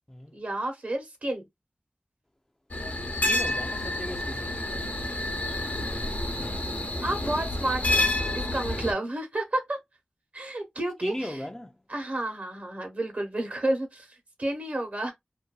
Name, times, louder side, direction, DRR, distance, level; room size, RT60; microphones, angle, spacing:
voice 1, 0.3-1.5 6.7-9.8 10.3-11.5 11.9-15.1, right 1 dB, 60° right, 1.0 m, -31 dB
sound 1, 2.7-8.9, left 1 dB, 60° left, 0.7 m, -29 dB
voice 2, 3.2-4.7 11.0-11.7, left 1 dB, 15° left, 0.4 m, -37 dB
2.6 x 2.3 x 2.2 m
cardioid pair, 45°, 3 cm